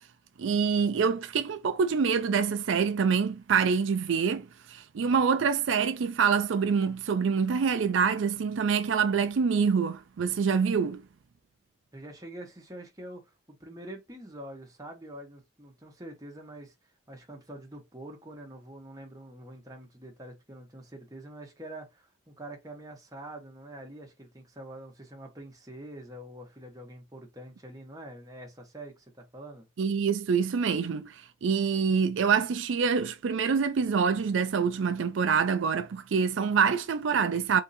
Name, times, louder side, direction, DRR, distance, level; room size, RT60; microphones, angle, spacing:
voice 1, 0.4-11.0 29.8-37.6, right 6 dB, 75° right, 0.4 m, -26 dB
voice 2, 11.9-16.7 17.1-29.7, right 1 dB, 20° right, 1.2 m, -45 dB
3.8 x 2.7 x 4.1 m
head